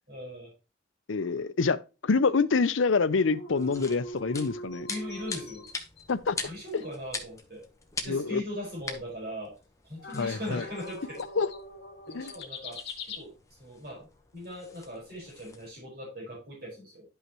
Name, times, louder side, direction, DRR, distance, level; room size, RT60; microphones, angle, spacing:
voice 1, 0.1-0.5 4.9-5.6 6.4-7.6 8.0-9.5 9.8-11.2 12.1-12.8 13.1-13.3 13.6-14.1 14.3-17.0, left 1 dB, 50° right, 4.9 m, -39 dB
voice 2, 1.1-4.9 6.1-6.4 8.1-8.4 10.1-10.6 11.4-11.5 12.1-12.3, left 4 dB, 85° left, 0.6 m, -26 dB
sound 1, 3.2-6.1 6.4-6.5 6.8-6.9 10.0-13.2, left 1 dB, 60° left, 1.9 m, -42 dB
sound 2, 3.5-15.7, left 4 dB, 15° left, 1.0 m, -43 dB
11.0 x 5.6 x 3.0 m
head